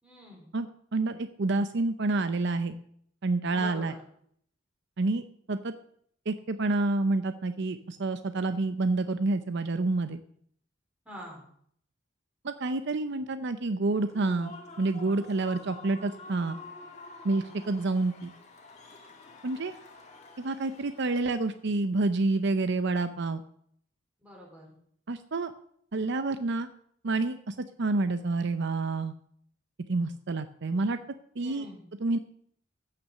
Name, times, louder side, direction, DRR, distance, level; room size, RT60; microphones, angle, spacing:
voice 1, 0.0-0.5 3.5-4.0 11.0-11.4 24.2-24.7 31.4-31.8, equal, 5° right, -3 dB, 4.3 m, -45 dB
voice 2, 0.5-2.8 3.2-3.9 5.0-5.7 6.3-10.2 12.4-16.6 17.2-18.3 19.4-19.7 20.4-23.4 25.1-25.5 25.9-26.7 27.0-29.1 29.9-31.0 31.4-31.7 32.0-32.2, right 3 dB, 65° right, 10 dB, 0.6 m, -28 dB
Human voice / Cheering / Applause, 13.9-21.6, left 2 dB, 35° left, 1.9 m, -48 dB
15.5 x 5.9 x 6.6 m, 0.66 s
head